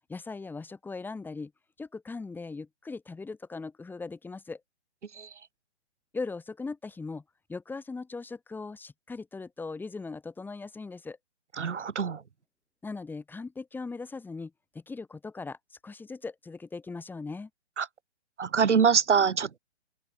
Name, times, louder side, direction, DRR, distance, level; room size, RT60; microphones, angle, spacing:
voice 1, 0.1-1.5 1.8-4.6 6.1-7.2 7.5-11.2 12.8-15.6 15.8-17.5, left 4 dB, 5° left, 7.2 m, -39 dB
voice 2, 11.6-12.2 17.8-17.9 18.4-19.6, right 6 dB, 75° right, 2.3 m, -24 dB
open air
hypercardioid pair, 145°, 35 cm